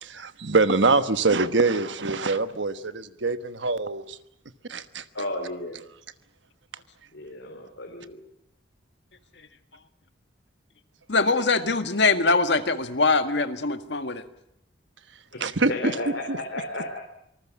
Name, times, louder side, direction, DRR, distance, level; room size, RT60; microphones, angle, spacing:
voice 1, 0.0-4.2 4.7-5.0 15.4-15.9 16.3-16.4, right 3 dB, 75° right, 11 dB, 1.3 m, -24 dB
voice 2, 5.1-5.8 7.1-8.2 15.3-15.4 15.7-17.0, left 1 dB, 85° left, 3 dB, 3.7 m, -33 dB
voice 3, 11.1-14.2, left 3 dB, 65° left, 8 dB, 1.7 m, -22 dB
26.5 x 19.5 x 7.3 m, 0.77 s
head